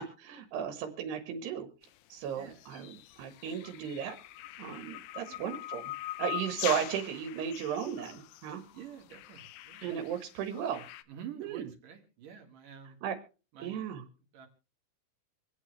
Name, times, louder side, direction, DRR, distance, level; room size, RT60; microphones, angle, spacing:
voice 1, 0.0-1.7 2.1-2.9 3.2-4.2 4.6-5.8 6.2-8.6 9.8-10.9 11.4-11.7 13.0-13.2 13.6-14.0, right 8 dB, 90° right, 7 dB, 3.4 m, -35 dB
sound 1, 2.6-11.0, left 15 dB, 80° left, 2.7 m, -42 dB
voice 2, 8.5-9.9 11.1-13.0 13.5-13.8 14.3-14.5, right 9 dB, 60° right, 5 dB, 3.2 m, -48 dB
26.0 x 8.7 x 3.2 m, 0.33 s
omnidirectional pair, 4.6 m